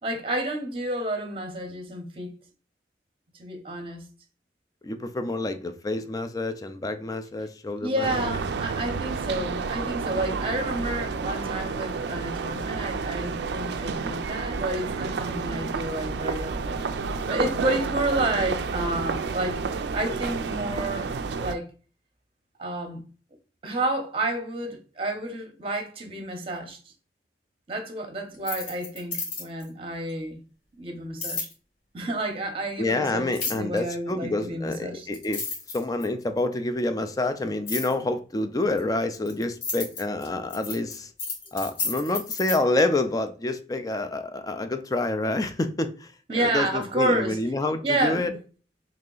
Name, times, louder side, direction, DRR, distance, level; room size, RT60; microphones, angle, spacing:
voice 1, 0.0-2.3 3.4-4.0 7.8-16.8 17.3-21.1 21.4-21.7 22.6-23.0 23.6-26.8 27.7-30.4 30.8-31.5 31.9-35.1 46.3-47.4 47.8-48.3, right 1 dB, 30° right, 0.7 m, -30 dB
voice 2, 4.8-8.1 32.8-35.4 35.7-41.1 41.5-46.1 46.3-48.3, left 2 dB, 20° left, 0.4 m, -28 dB
sound 1, 8.0-21.5, right 4 dB, 70° right, 0.4 m, -30 dB
sound 2, 28.3-29.7 31.2-31.5 33.3-33.8 34.7-34.8 35.1-36.2 37.7-37.9 38.8-42.6, left 4 dB, 90° left, 1.8 m, -32 dB
3.2 x 2.8 x 3.8 m
head